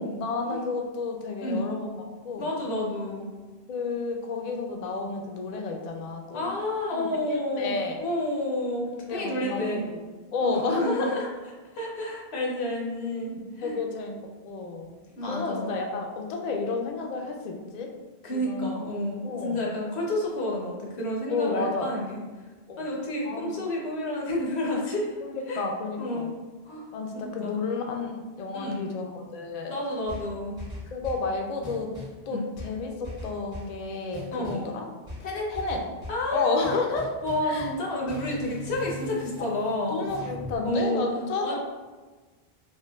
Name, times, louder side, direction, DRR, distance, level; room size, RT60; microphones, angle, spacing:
voice 1, 0.0-1.9 2.2-2.5 3.7-6.5 6.9-8.0 9.0-10.0 10.3-11.1 13.6-14.2 14.4-14.9 15.3-17.9 18.3-18.8 19.2-19.6 21.3-21.9 22.7-22.9 23.2-23.6 25.2-26.3 26.9-29.8 30.9-31.9 32.3-34.9 35.5-35.8 36.3-37.1 37.4-37.7 39.4-39.5 39.9-41.6, left 3 dB, 55° left, 2 dB, 0.5 m, -31 dB
voice 2, 2.4-3.3 6.3-9.8 10.4-11.2 11.7-13.8 15.1-15.7 18.2-22.2 22.8-25.2 25.5-25.6 26.0-26.3 26.7-26.9 27.1-27.5 28.5-28.9 29.7-30.6 32.3-32.5 34.3-34.7 35.2-35.5 36.1-36.7 37.2-40.0 40.6-41.0 41.4-41.6, left 1 dB, 90° left, -3 dB, 1.1 m, -30 dB
sound 1, 30.1-31.3 31.6-32.2 32.6-33.8 34.1-34.7 35.1-36.3 36.6-37.8 38.1-40.6, left 1 dB, 65° right, 2.0 m, -40 dB
5.1 x 2.2 x 2.3 m, 1.3 s
omnidirectional pair, 1.1 m